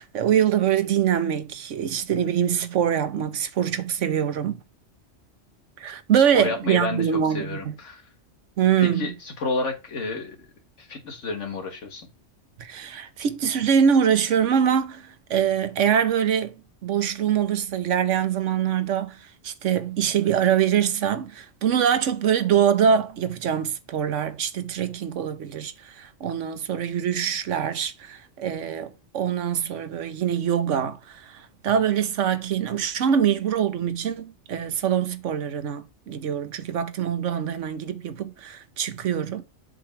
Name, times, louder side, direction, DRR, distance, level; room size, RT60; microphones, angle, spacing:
voice 1, 0.0-4.6 5.8-7.8 8.6-9.1 12.6-16.5 16.8-39.4, right 8 dB, 80° right, 1.2 m, -24 dB
voice 2, 6.1-8.0 8.8-10.4 10.8-12.1, left 3 dB, 80° left, 1.9 m, -31 dB
7.5 x 3.3 x 5.8 m
omnidirectional pair, 1.2 m